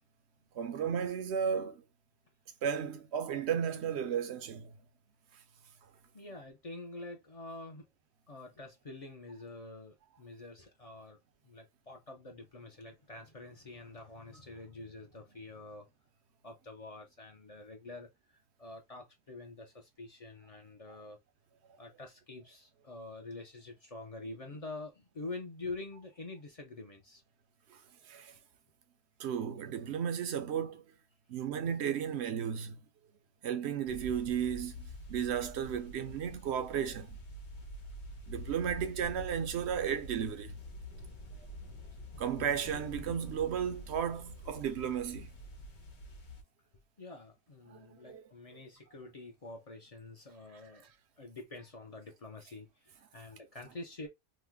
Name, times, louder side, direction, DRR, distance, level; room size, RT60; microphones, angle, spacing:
voice 1, 0.5-1.8 2.6-4.8 27.7-27.8 28.0-28.4 29.2-30.9 31.3-32.8 33.4-37.2 38.3-40.6 42.2-45.3 47.7-48.2, right 8 dB, 80° right, 0.9 m, -34 dB
voice 2, 6.1-7.9 8.3-15.9 16.4-21.2 21.8-27.2 40.9-41.0 47.0-50.9 51.2-54.1, left 2 dB, 40° left, 0.6 m, -47 dB
sound 1, 33.9-46.4, left 1 dB, 80° left, 1.2 m, -46 dB
3.1 x 2.1 x 3.4 m
omnidirectional pair, 1.1 m